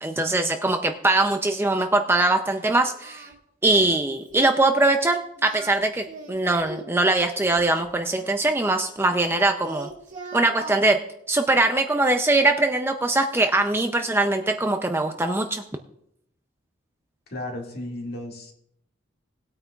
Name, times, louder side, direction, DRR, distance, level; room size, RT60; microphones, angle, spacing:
voice 1, 0.0-3.3 3.6-9.9 10.3-11.0 11.3-15.6, right 2 dB, 10° right, 5 dB, 0.4 m, -22 dB
Singing, 3.0-3.3 3.6-4.0 4.3-4.6 5.4-6.9 7.6-9.4 9.6-10.8, right 3 dB, 35° right, 1.9 m, -40 dB
voice 2, 17.3-18.5, left 1 dB, 50° left, 0 dB, 2.1 m, -34 dB
19.0 x 8.9 x 2.4 m, 0.75 s
head